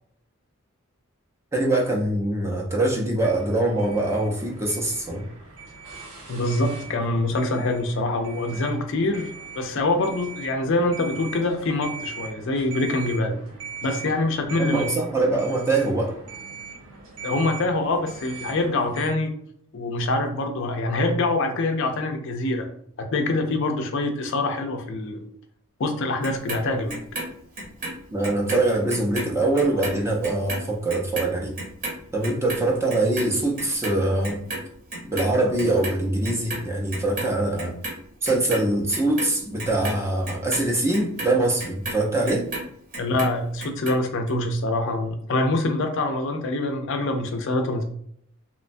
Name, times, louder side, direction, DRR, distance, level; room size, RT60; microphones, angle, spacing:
voice 1, 1.5-5.2 14.6-16.2 28.1-31.5 32.1-34.4 35.1-37.7 38.2-42.5, right 2 dB, 15° right, -1 dB, 0.5 m, -23 dB
sound 1, 3.2-19.1, right 5 dB, 90° right, 0.8 m, -41 dB
voice 2, 6.3-13.3 13.8-14.9 17.2-19.3 19.7-22.7 23.0-25.2 25.8-27.0 43.0-47.8, left 2 dB, 60° left, 5 dB, 0.4 m, -25 dB
Clock, 26.2-28.6 28.9-35.3 35.6-36.6 36.9-37.9 38.2-42.7 42.9-43.9 44.3-44.4, right 2 dB, 40° right, 0.9 m, -33 dB
3.0 x 2.2 x 2.5 m, 0.66 s
head